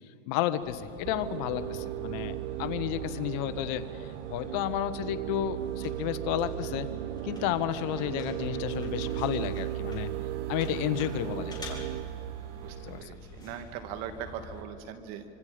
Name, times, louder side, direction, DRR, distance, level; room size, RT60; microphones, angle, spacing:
voice 1, 0.3-6.9 7.2-10.1 10.5-11.8 12.8-13.1, left 12 dB, 45° left, 11 dB, 1.3 m, -32 dB
sound 1, 0.6-14.6, left 2 dB, 10° left, 4.5 m, -47 dB
sound 2, 1.0-13.0, right 16 dB, 65° right, 0.7 m, -36 dB
voice 2, 12.6-15.2, right 9 dB, 45° right, 8 dB, 2.2 m, -40 dB
25.5 x 25.0 x 5.2 m, 2.6 s
supercardioid pair, 135°, 38 cm